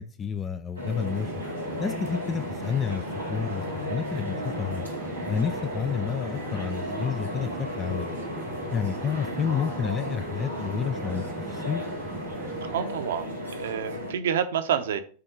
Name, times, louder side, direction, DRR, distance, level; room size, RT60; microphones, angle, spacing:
voice 1, 0.0-1.4 1.8-4.8 5.3-8.1 8.7-11.2 11.5-11.8, left 7 dB, 20° left, 0.4 m, -30 dB
sound 1, 0.8-14.1, equal, 90° left, 2.5 m, -34 dB
sound 2, 1.1-12.8, right 4 dB, 25° right, 0.8 m, -41 dB
voice 2, 12.7-13.3 13.5-15.0, right 9 dB, 60° right, 0.7 m, -28 dB
6.7 x 3.7 x 5.1 m
figure-of-eight pair, 90°, 0 cm